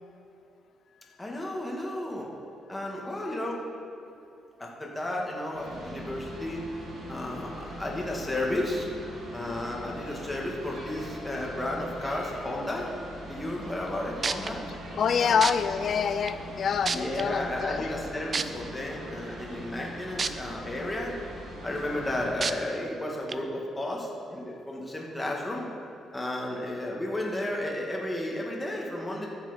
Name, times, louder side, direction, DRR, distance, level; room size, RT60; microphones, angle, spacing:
voice 1, 1.2-2.3 2.7-3.6 4.6-6.6 7.1-8.9 9.3-12.9 13.2-14.6 15.2-15.4 16.9-21.1 21.6-25.7 26.1-29.3, left 1 dB, 15° left, -2 dB, 2.2 m, -33 dB
sound 1, 5.5-22.3, equal, 75° right, 3.0 m, -42 dB
sound 2, 13.9-14.0 14.2-14.5 15.4-15.5 16.3-16.4 16.8-17.2 18.3-18.4 20.2-20.3 20.8-20.9 22.4-22.5 23.3-23.4, right 5 dB, 40° right, 0.5 m, -27 dB
voice 2, 15.0-17.9, left 7 dB, 55° left, 11 dB, 0.6 m, -26 dB
13.5 x 7.4 x 5.3 m, 2.6 s
cardioid pair, 90°, 0 cm